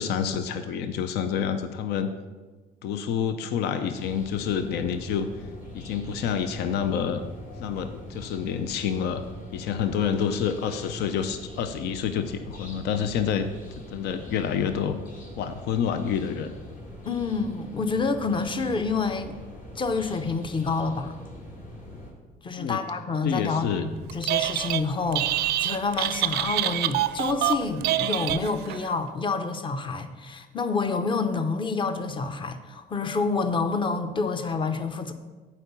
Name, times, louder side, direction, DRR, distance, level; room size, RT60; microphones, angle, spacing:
voice 1, 0.0-2.1 2.8-5.3 5.7-7.2 7.6-9.2 9.5-13.5 13.9-15.0 15.4-16.5 22.6-22.8 23.2-23.9, left 7 dB, 80° left, 10 dB, 0.6 m, -28 dB
sound 1, 4.0-22.1, left 1 dB, 55° left, 2.9 m, -43 dB
voice 2, 17.0-19.4 19.8-21.1 22.4-35.1, left 4 dB, 30° left, 9 dB, 0.7 m, -28 dB
Telephone, 24.1-24.8 25.1-28.8, right 13 dB, 75° right, 0.4 m, -26 dB
8.4 x 4.8 x 6.9 m, 1.3 s
cardioid pair, 110°, 17 cm